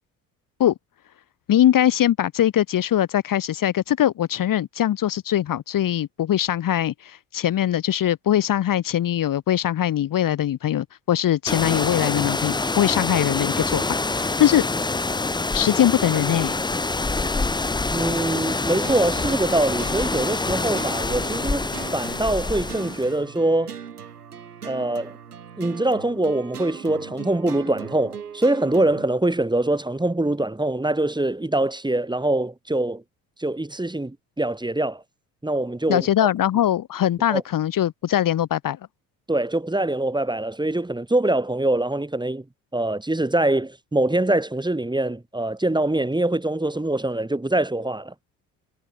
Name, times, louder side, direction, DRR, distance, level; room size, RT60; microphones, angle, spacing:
voice 1, 1.5-13.8 14.1-14.7 15.5-16.5 35.9-38.8, left 11 dB, 45° left, 2.2 m, -21 dB
sound 1, 11.5-23.1, left 3 dB, 10° left, 0.9 m, -26 dB
voice 2, 17.9-23.7 24.6-25.2 25.6-33.0 33.4-35.0 35.4-36.3 37.3-37.4 39.3-42.4 42.7-48.1, right 2 dB, 10° right, 4.3 m, -24 dB
sound 2, 18.8-29.1, right 7 dB, 90° right, 2.2 m, -39 dB
figure-of-eight pair, 55°, 45 cm